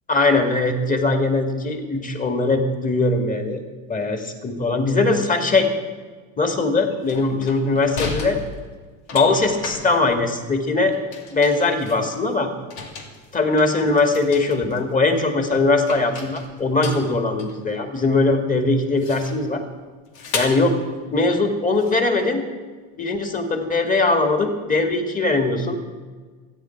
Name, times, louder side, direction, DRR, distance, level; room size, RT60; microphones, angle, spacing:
voice 1, 0.1-3.6 3.9-5.7 6.4-8.4 9.1-10.9 11.3-12.5 13.3-19.6 20.3-20.8 21.1-22.4 23.0-25.8, left 3 dB, 20° left, 4 dB, 2.1 m, -20 dB
sound 1, 6.5-6.6 6.9-10.6 10.9-12.3 12.7-14.8 15.2-15.6 15.9-18.2 19.0-19.6 20.1-20.7 21.8-22.1, left 3 dB, 85° left, 2.6 m, -35 dB
27.5 x 9.6 x 4.7 m, 1.4 s
supercardioid pair, 110°, 40 cm